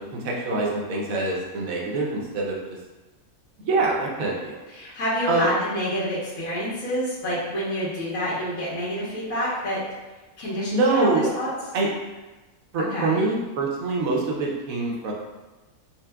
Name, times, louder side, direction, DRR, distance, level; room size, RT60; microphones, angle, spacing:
voice 1, 0.0-2.6 3.6-4.6 5.3-5.6 10.7-11.3 11.7-11.9 12.7-15.1, right 3 dB, 70° right, -2 dB, 1.1 m, -24 dB
voice 2, 4.7-9.8 10.4-11.5 12.9-13.1, equal, 65° left, -10 dB, 1.5 m, -28 dB
5.6 x 2.1 x 2.2 m, 1.2 s
omnidirectional pair, 1.6 m